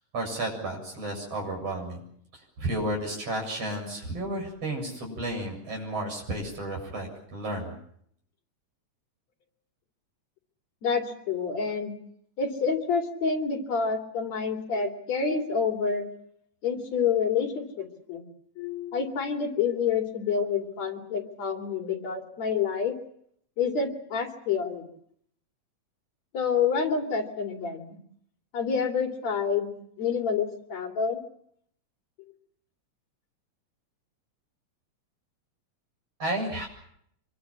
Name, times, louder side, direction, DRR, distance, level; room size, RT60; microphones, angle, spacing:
voice 1, 0.1-2.0 2.3-7.8 36.2-36.7, right 1 dB, 55° right, 1 dB, 8.7 m, -32 dB
voice 2, 10.8-11.9 12.4-16.1 16.6-18.2 18.6-23.0 23.6-24.8 26.3-28.0 28.5-29.7 30.0-31.2, left 6 dB, 65° left, 3 dB, 3.8 m, -28 dB
25.5 x 22.5 x 7.4 m, 0.69 s
omnidirectional pair, 3.4 m